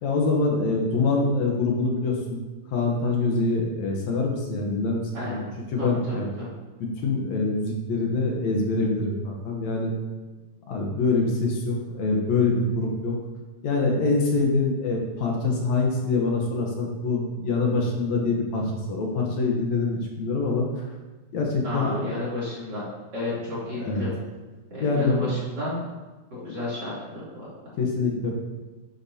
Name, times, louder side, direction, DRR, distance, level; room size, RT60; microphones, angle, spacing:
voice 1, 0.0-2.4 2.7-6.3 6.8-9.9 10.7-13.2 13.6-20.7 21.3-22.2 23.8-24.0 24.8-25.3 26.3-26.5 27.8-28.3, left 3 dB, 70° left, 0 dB, 2.4 m, -25 dB
voice 2, 5.8-6.5 21.6-22.9 23.1-24.2 24.7-25.8 26.4-27.5, left 1 dB, 35° right, -9 dB, 3.7 m, -32 dB
10.5 x 8.7 x 2.9 m, 1.2 s
omnidirectional pair, 3.4 m